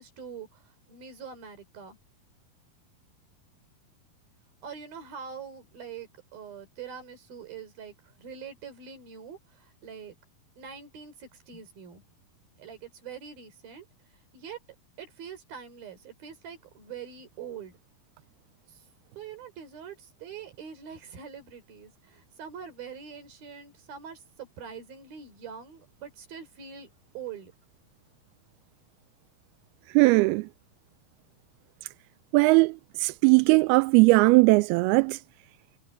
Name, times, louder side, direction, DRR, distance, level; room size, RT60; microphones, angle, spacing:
voice 1, 0.0-2.0 4.6-10.1 10.6-12.0 12.6-13.9 14.3-14.6 15.0-17.7 18.7-18.8 19.2-26.9 27.1-27.5, right 7 dB, 65° right, 5.8 m, -44 dB
voice 2, 29.9-30.5 32.3-35.2, right 25 dB, 85° right, 2.5 m, -19 dB
omnidirectional pair, 4.5 m